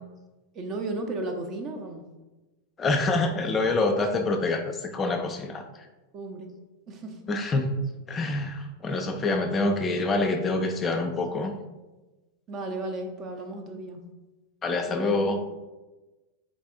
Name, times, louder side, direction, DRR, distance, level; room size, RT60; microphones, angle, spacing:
voice 1, 0.5-2.0 6.1-6.5 6.9-7.2 12.5-14.0 14.9-15.4, right 2 dB, 30° right, 5 dB, 0.5 m, -34 dB
voice 2, 2.8-5.6 7.3-7.7 8.1-11.5 14.6-15.4, left 2 dB, 20° left, 4 dB, 0.4 m, -26 dB
4.1 x 3.9 x 2.4 m, 1.1 s
figure-of-eight pair, 90°, 0 cm